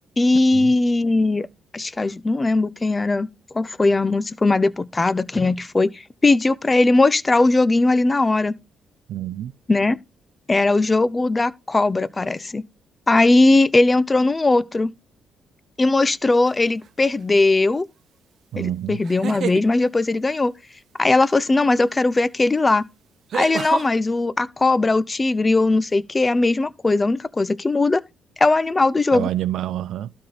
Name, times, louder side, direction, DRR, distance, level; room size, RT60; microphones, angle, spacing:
voice 1, 0.2-1.5 1.7-3.3 3.5-8.5 9.7-10.0 10.5-12.6 13.1-14.9 15.8-17.8 18.6-20.5 21.0-22.8 23.3-28.0 28.4-29.3, left 2 dB, 20° left, 0.7 m, -19 dB
voice 2, 9.1-9.5 18.5-19.0 29.1-30.1, right 12 dB, 75° right, 0.5 m, -27 dB
sound 1, 16.4-16.9 19.0-19.7 21.9-22.0 23.3-23.9, right 8 dB, 60° right, 0.9 m, -28 dB
12.5 x 4.4 x 5.1 m
cardioid pair, 90°, 0 cm